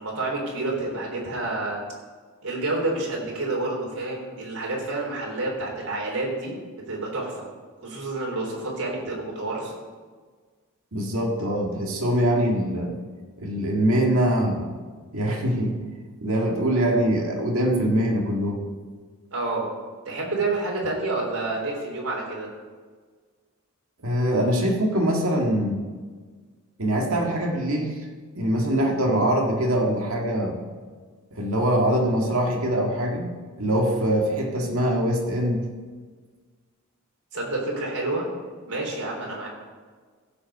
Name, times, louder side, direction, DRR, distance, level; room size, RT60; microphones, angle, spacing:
voice 1, 0.0-1.8 2.4-6.6 6.9-7.5 7.8-9.7 19.3-19.7 20.1-22.5 37.3-38.3 38.6-39.5, right 2 dB, 85° right, -2 dB, 3.6 m, -29 dB
voice 2, 10.9-12.9 13.4-14.7 15.1-15.8 16.2-18.6 24.0-25.8 26.8-28.1 28.4-30.6 31.3-33.3 33.6-35.7, right 1 dB, 70° right, 1 dB, 1.9 m, -23 dB
16.0 x 5.4 x 6.7 m, 1.5 s
head